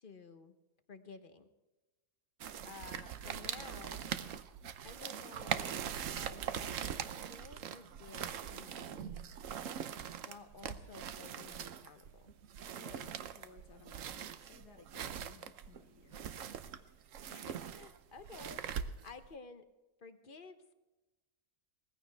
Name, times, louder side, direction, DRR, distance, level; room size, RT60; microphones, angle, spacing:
voice 1, 0.0-0.5 0.9-1.5 2.6-4.1 4.8-5.8 6.1-7.0 7.3-9.2 10.2-12.3 17.3-19.6 20.0-20.7, left 4 dB, 40° left, 9 dB, 0.9 m, -53 dB
sound 1, 2.4-19.3, right 8 dB, 60° right, 1.0 m, -42 dB
voice 2, 12.7-16.4, left 5 dB, 85° left, 4 dB, 2.0 m, -59 dB
19.5 x 15.0 x 3.4 m, 1.1 s
omnidirectional pair, 1.7 m